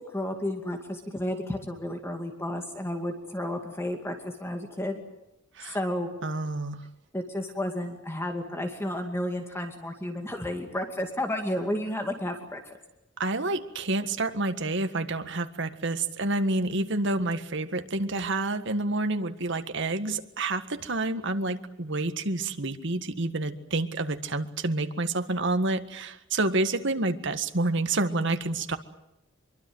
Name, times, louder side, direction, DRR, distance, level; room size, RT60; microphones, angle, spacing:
voice 1, 0.0-5.0 5.6-6.1 7.1-12.8, left 1 dB, 15° left, 4 dB, 2.4 m, -32 dB
voice 2, 6.2-6.9 13.2-28.8, right 2 dB, 65° right, 8 dB, 1.7 m, -28 dB
25.0 x 23.5 x 8.0 m, 0.87 s
head